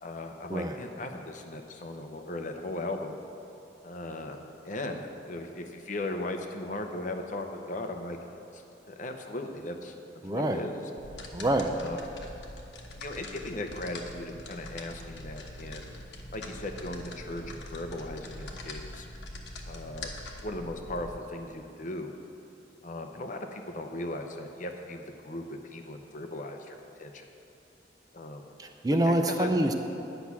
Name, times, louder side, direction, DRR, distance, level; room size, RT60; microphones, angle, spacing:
voice 1, 0.0-3.2 3.8-4.4 4.6-8.2 8.5-9.9 10.3-10.8 11.8-12.0 13.0-15.9 16.3-19.1 19.7-20.1 20.4-22.1 22.8-27.3 28.1-28.5 29.0-29.5, left 2 dB, 45° left, 4 dB, 0.8 m, -37 dB
voice 2, 10.2-10.6 11.3-11.7 28.6-29.7, right 1 dB, 20° right, 5 dB, 0.5 m, -26 dB
sound 1, 11.0-21.2, left 1 dB, 70° left, 1.2 m, -43 dB
10.5 x 6.1 x 8.3 m, 2.9 s
head